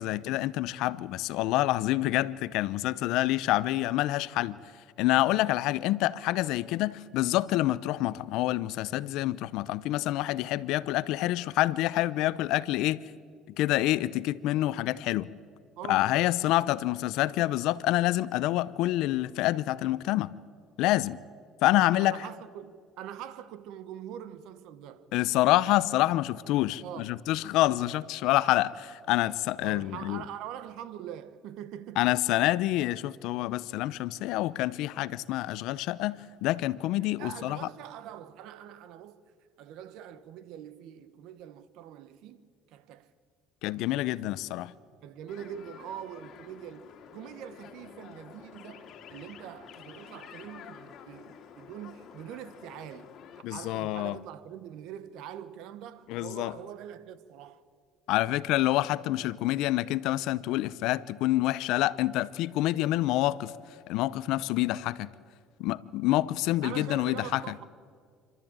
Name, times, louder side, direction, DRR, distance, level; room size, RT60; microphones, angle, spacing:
voice 1, 0.0-4.6 5.0-13.0 13.6-15.3 15.9-20.3 20.8-21.2 21.6-22.2 25.1-30.2 32.0-37.7 43.6-44.7 53.4-54.2 56.1-56.5 58.1-63.5 63.9-65.1 65.6-67.5, left 16 dB, 75° left, 0.6 m, -27 dB
voice 2, 15.8-16.2 21.7-25.1 26.8-27.2 29.6-32.2 37.2-39.2 39.6-43.1 45.0-53.1 53.5-57.6 66.6-67.7, right 10 dB, 75° right, 1.1 m, -43 dB
sound 1, 45.3-53.4, left 8 dB, 55° left, 2.2 m, -49 dB
26.5 x 12.5 x 8.8 m
supercardioid pair, 100°, 0 cm